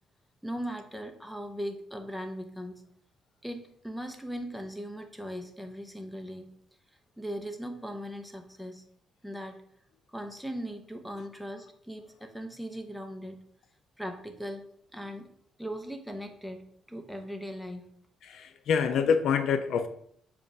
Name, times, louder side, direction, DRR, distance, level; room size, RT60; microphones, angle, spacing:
voice 1, 0.4-2.8 3.4-6.6 7.2-8.8 9.2-9.6 10.1-13.4 14.0-15.3 15.6-17.9, equal, ahead, 5 dB, 0.8 m, -39 dB
voice 2, 18.2-19.9, left 6 dB, 75° left, 9 dB, 0.5 m, -26 dB
7.1 x 2.5 x 5.3 m, 0.65 s
cardioid pair, 90°, 0 cm